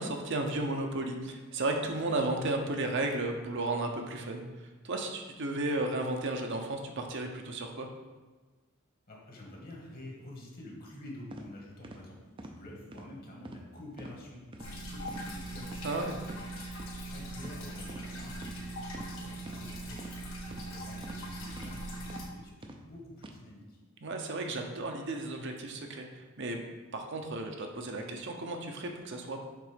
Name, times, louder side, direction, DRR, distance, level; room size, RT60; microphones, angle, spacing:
voice 1, 0.0-7.9 15.8-16.2 24.0-26.6 26.9-29.4, right 2 dB, 60° right, 3 dB, 0.8 m, -34 dB
voice 2, 9.1-16.5 17.0-23.8, left 1 dB, 45° left, -2 dB, 1.6 m, -48 dB
sound 1, 11.3-11.5 11.8-12.0 12.4-12.6 12.9-13.1 13.4-13.7 14.0-14.1 14.5-14.7 15.1-15.3 15.6-15.8 16.2-16.4 16.8-16.9 17.4-17.6 17.9-18.1 18.4-18.6 18.9-19.1 19.5-19.6 20.0-20.1 20.5-20.7 21.0-21.2 21.6-21.7 22.1-22.2 22.6-22.8 23.2-23.3, right 2 dB, 25° right, 0.5 m, -46 dB
sound 2, 14.6-22.2, right 1 dB, 75° left, 1.6 m, -41 dB
6.7 x 3.8 x 5.1 m, 1.3 s
head